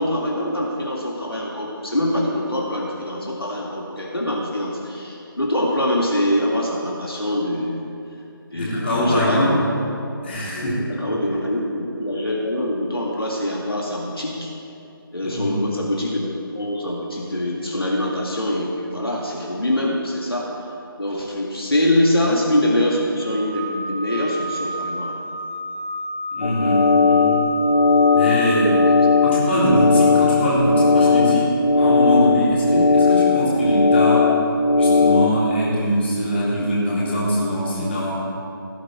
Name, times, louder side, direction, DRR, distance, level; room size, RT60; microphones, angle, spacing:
voice 1, 0.0-7.8 8.5-9.6 10.6-14.5 15.1-20.5 21.0-25.2, left 1 dB, 75° left, -3 dB, 2.1 m, -24 dB
voice 2, 8.5-9.6 10.2-10.8 15.2-15.6 26.3-27.5 28.1-28.9 29.2-31.5 31.7-34.3 34.8-38.1, equal, 30° left, -7 dB, 3.5 m, -22 dB
sound 1, 23.2-31.0, equal, 35° right, 3.2 m, -31 dB
sound 2, 26.4-35.3, left 4 dB, 60° left, 0.6 m, -17 dB
16.5 x 10.5 x 4.5 m, 2.7 s
figure-of-eight pair, 155°, 12 cm